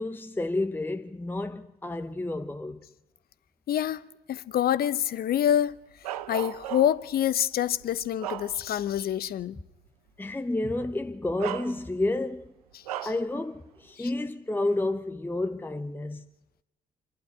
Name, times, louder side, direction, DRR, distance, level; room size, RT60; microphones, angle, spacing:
voice 1, 0.0-2.8 10.2-12.5 13.0-16.2, left 2 dB, 10° left, 0.8 m, -30 dB
voice 2, 3.7-4.0 4.3-5.8 6.3-9.6 14.0-14.1, left 10 dB, 55° left, 0.8 m, -26 dB
Bark, 6.0-7.1 7.7-9.0 9.4-9.6 10.7-10.8 11.4-12.2 12.9-13.3, right 13 dB, 85° right, 0.6 m, -36 dB
25.5 x 11.5 x 9.2 m
hypercardioid pair, 50°, 19 cm